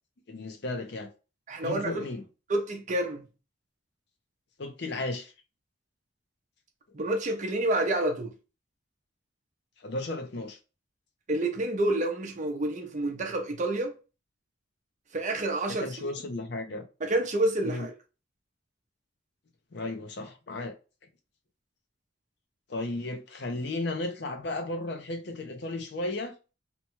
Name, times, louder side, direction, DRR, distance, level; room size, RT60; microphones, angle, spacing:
voice 1, 0.3-1.1 1.6-2.2 4.6-5.3 9.8-10.6 15.8-16.8 17.6-17.9 19.7-20.7 22.7-26.3, left 2 dB, 60° left, 0.6 m, -34 dB
voice 2, 1.5-2.0 2.5-3.3 6.9-8.3 11.3-14.0 15.1-16.1 17.0-17.9, right 1 dB, 40° right, 0.6 m, -28 dB
2.9 x 2.2 x 2.9 m
head